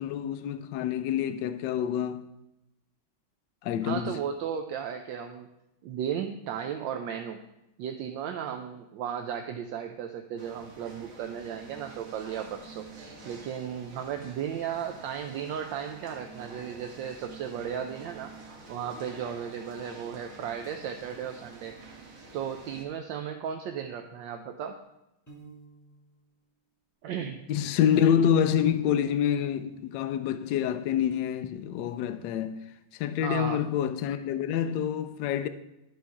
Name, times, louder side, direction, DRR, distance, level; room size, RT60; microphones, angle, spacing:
voice 1, 0.0-2.3 3.6-4.2 27.5-32.6 32.9-35.5, left 9 dB, 75° left, 1.1 m, -27 dB
voice 2, 3.8-5.5 5.8-7.4 7.8-18.3 18.7-21.7 22.3-24.8 27.0-27.5 33.2-33.6, right 8 dB, 75° right, 1.2 m, -35 dB
sound 1, 10.4-22.8, right 3 dB, 45° right, 1.5 m, -48 dB
Piano, 25.3-26.2, right 4 dB, 10° left, 1.4 m, -51 dB
12.5 x 4.3 x 4.7 m
omnidirectional pair, 2.2 m